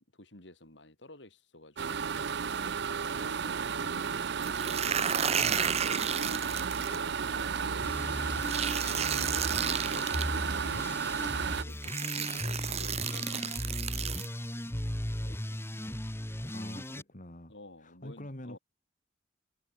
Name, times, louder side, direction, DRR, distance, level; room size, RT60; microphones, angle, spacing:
voice 1, 0.0-2.1 3.0-4.6 6.0-11.0 11.6-13.7 14.0-14.3 15.1-15.6 16.4-16.8 17.5-18.6, left 1 dB, 70° left, 5.3 m, -53 dB
sound 1, 1.8-11.6, right 6 dB, 65° right, 0.6 m, -33 dB
sound 2, 4.4-7.0 8.4-10.2 11.3-11.4 11.8-14.3, right 7 dB, 35° right, 1.1 m, -32 dB
voice 2, 5.4-5.7 16.5-17.5 17.8-18.6, left 1 dB, 45° left, 3.1 m, -45 dB
sound 3, 7.8-17.0, left 1 dB, 15° left, 1.7 m, -37 dB
head